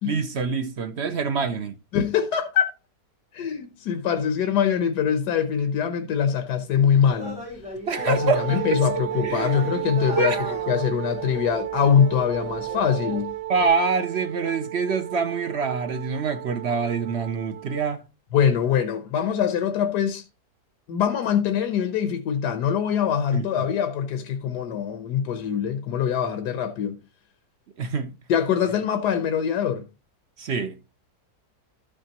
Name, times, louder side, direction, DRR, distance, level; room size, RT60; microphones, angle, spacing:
voice 1, 0.0-1.8 7.9-8.8 9.2-9.7 10.2-10.5 13.5-18.1 23.3-23.7 27.8-28.2 30.4-30.8, right 4 dB, 55° right, 0.8 m, -26 dB
voice 2, 1.9-2.7 3.3-7.4 8.1-13.3 18.3-20.2 20.9-27.0 28.3-29.8, left 8 dB, 80° left, 1.5 m, -23 dB
sound 1, 7.1-13.3 13.5-13.7, equal, 5° right, 6.1 m, -37 dB
Wind instrument woodwind instrument, 7.9-17.9, right 15 dB, 85° right, 1.2 m, -33 dB
13.0 x 6.6 x 2.9 m
omnidirectional pair, 1.7 m